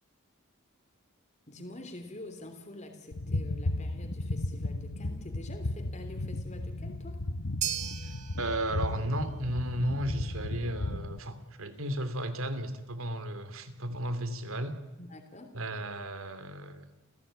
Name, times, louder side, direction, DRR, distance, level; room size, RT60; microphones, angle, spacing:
voice 1, 1.5-7.2 15.0-15.5, left 1 dB, 35° left, 6 dB, 3.3 m, -46 dB
sound 1, 3.1-11.2, left 2 dB, 70° left, 1.1 m, -35 dB
sound 2, 7.6-16.0, right 9 dB, 35° right, 2.0 m, -43 dB
voice 2, 8.4-14.8 15.5-16.9, right 1 dB, 80° right, 11 dB, 2.9 m, -34 dB
30.0 x 17.0 x 8.8 m, 1.1 s
head